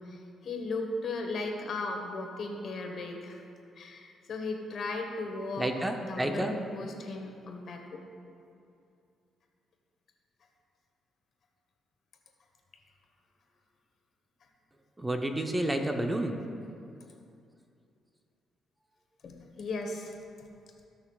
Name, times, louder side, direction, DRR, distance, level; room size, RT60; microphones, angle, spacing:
voice 1, 0.0-3.4 3.8-5.7 6.1-7.8 19.2-20.2, left 3 dB, 60° left, 2 dB, 1.2 m, -36 dB
voice 2, 5.6-6.5 15.0-16.4, right 1 dB, 15° right, 4 dB, 0.7 m, -30 dB
17.0 x 6.0 x 2.4 m, 2.5 s
cardioid pair, 90°, 0 cm